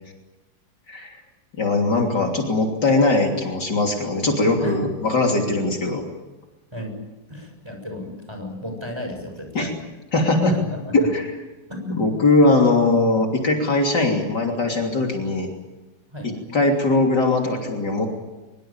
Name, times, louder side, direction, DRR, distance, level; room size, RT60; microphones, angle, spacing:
voice 1, 1.5-6.0 9.6-9.7 10.1-10.5 10.9-11.3 12.0-15.5 16.2-18.1, left 2 dB, 60° left, 1 dB, 3.7 m, -20 dB
voice 2, 4.6-4.9 6.7-6.9 7.3-9.7 10.4-11.1 11.8-12.0 16.1-16.4, equal, 10° right, 4 dB, 6.9 m, -32 dB
24.0 x 23.5 x 8.8 m, 1.1 s
omnidirectional pair, 2.1 m